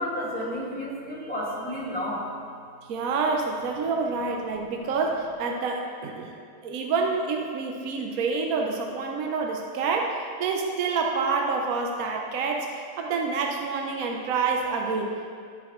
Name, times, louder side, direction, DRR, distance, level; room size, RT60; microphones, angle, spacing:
voice 1, 0.0-2.3, equal, 5° left, -7 dB, 1.5 m, -31 dB
voice 2, 2.9-6.3 6.6-15.4, right 4 dB, 70° right, 2 dB, 0.8 m, -28 dB
11.5 x 7.1 x 3.1 m, 2.4 s
omnidirectional pair, 2.3 m